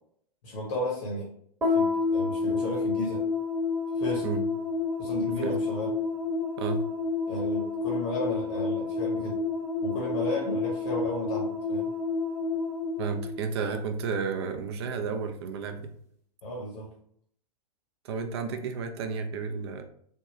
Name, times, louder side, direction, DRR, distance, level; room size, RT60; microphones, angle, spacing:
voice 1, 0.4-1.3 1.7-3.2 3.9-4.3 5.0-5.9 7.3-9.4 9.8-11.9 16.4-16.9, left 1 dB, 45° left, -2 dB, 1.0 m, -33 dB
sound 1, 1.6-14.1, left 4 dB, 10° right, 0.9 m, -29 dB
voice 2, 13.0-15.9 18.0-19.8, right 5 dB, 40° right, 6 dB, 0.4 m, -32 dB
3.5 x 2.3 x 2.9 m, 0.64 s
figure-of-eight pair, 105°, 21 cm